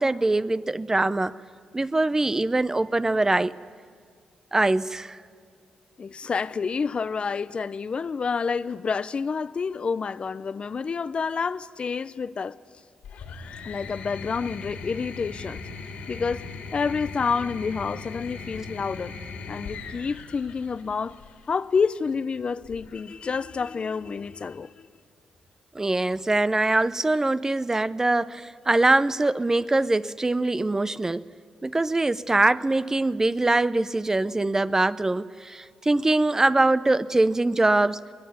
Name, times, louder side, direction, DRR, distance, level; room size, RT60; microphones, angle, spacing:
voice 1, 0.0-1.3 1.7-3.5 4.5-5.2 25.7-31.2 31.6-38.0, right 2 dB, 20° right, 0.7 m, -23 dB
voice 2, 6.0-12.6 13.6-15.6 16.1-16.5 16.7-19.1 19.5-21.2 21.5-24.9, left 5 dB, 45° left, 0.6 m, -28 dB
sound 1, 13.0-21.4 22.6-23.3, left 4 dB, 80° left, 3.5 m, -39 dB
22.0 x 20.0 x 9.3 m
cardioid pair, 65°, 2 cm